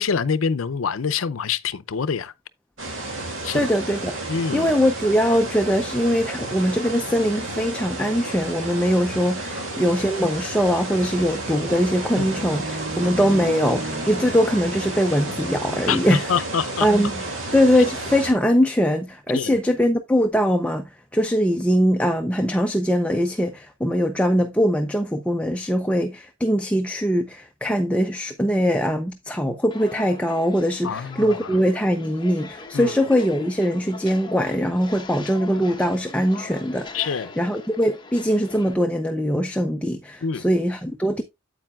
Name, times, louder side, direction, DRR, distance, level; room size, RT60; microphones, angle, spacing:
voice 1, 0.0-2.3 3.4-3.7 4.3-4.7 9.5-9.6 12.2-12.4 15.9-16.9 19.3-19.6 30.8-31.6 32.7-32.9 36.9-37.3 40.2-40.4, left 6 dB, 80° left, 0.6 m, -26 dB
sound 1, 2.8-18.3, right 2 dB, 70° right, 2.4 m, -32 dB
voice 2, 3.5-4.1 4.5-16.3 16.8-17.1 17.5-20.8 21.1-41.2, equal, 5° left, 0.6 m, -22 dB
sound 2, 11.6-15.6, right 2 dB, 35° right, 0.7 m, -35 dB
Walk footsteps, 29.7-38.7, left 3 dB, 20° left, 1.1 m, -41 dB
8.8 x 8.4 x 2.3 m
head